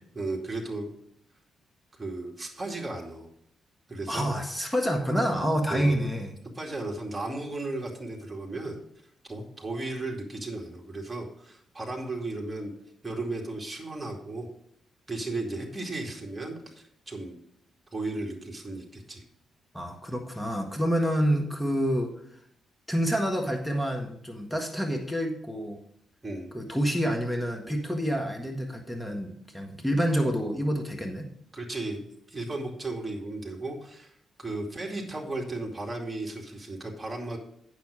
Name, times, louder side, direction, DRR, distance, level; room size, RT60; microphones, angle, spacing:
voice 1, 0.1-0.9 1.9-3.3 3.9-4.3 5.7-6.1 6.5-8.8 9.3-12.7 13.0-14.5 15.1-17.3 17.9-19.2 26.2-26.5 31.5-34.1 34.4-37.4, right 2 dB, 20° right, -1 dB, 2.4 m, -35 dB
voice 2, 4.1-6.3 19.7-22.1 22.9-25.8 26.5-31.3, equal, 5° left, 2 dB, 1.6 m, -28 dB
8.9 x 6.4 x 5.0 m, 0.72 s
hypercardioid pair, 40°, 0 cm